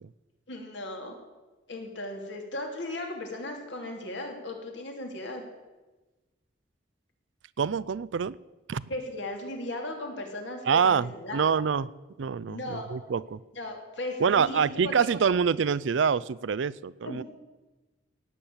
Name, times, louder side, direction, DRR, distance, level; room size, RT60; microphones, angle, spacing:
voice 1, 0.5-1.1 1.7-5.5 8.9-11.5 12.5-12.9 13.5-15.1 17.0-17.2, left 1 dB, 70° left, 2 dB, 2.9 m, -37 dB
voice 2, 7.6-8.4 8.7-8.8 10.7-11.9 12.2-13.4 14.2-17.2, right 6 dB, 70° right, 20 dB, 0.4 m, -26 dB
18.0 x 7.4 x 8.6 m, 1.2 s
head